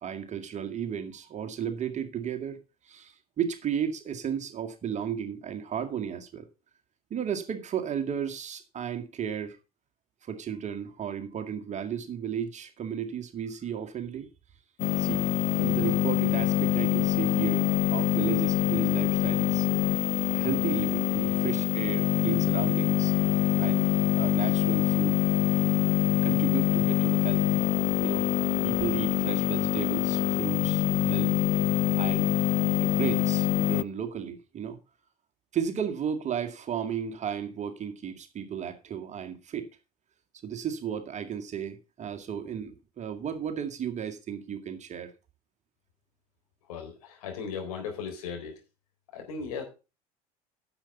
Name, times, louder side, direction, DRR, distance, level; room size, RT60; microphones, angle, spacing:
voice 1, 0.0-6.5 7.1-9.6 10.2-14.3 15.0-15.3 15.6-19.7 20.2-23.1 23.6-25.2 26.2-27.5 28.0-28.2 28.6-31.3 32.0-32.3 32.8-34.8 35.5-39.7 40.4-45.1, right 8 dB, 40° right, 2.0 m, -34 dB
sound 1, 14.8-33.8, left 14 dB, 40° left, 0.4 m, -25 dB
voice 2, 46.7-48.5 49.1-49.6, left 6 dB, 75° left, 4.2 m, -36 dB
10.5 x 7.3 x 5.5 m
figure-of-eight pair, 65°, 19 cm